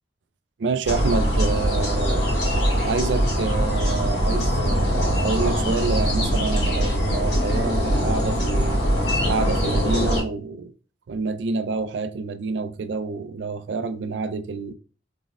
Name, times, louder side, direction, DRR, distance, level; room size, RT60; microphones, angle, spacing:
voice 1, 0.6-2.4 2.8-8.8 9.3-10.7 11.1-14.7, right 4 dB, 90° right, 0.4 m, -28 dB
sound 1, 0.8-10.2, equal, 70° left, 2.1 m, -22 dB
3.9 x 3.6 x 2.4 m
head